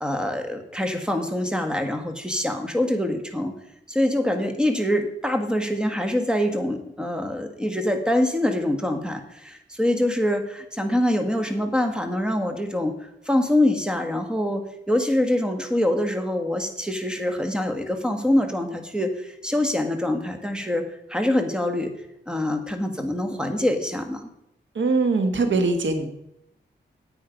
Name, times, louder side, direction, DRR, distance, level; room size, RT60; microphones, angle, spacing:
voice 1, 0.0-3.5 3.9-20.8 21.1-21.9 22.3-24.2, left 1 dB, 5° right, 6 dB, 1.7 m, -24 dB
voice 2, 24.7-26.1, right 3 dB, 85° right, 7 dB, 1.6 m, -22 dB
9.5 x 8.5 x 5.2 m, 0.81 s
wide cardioid pair, 75°, 19 cm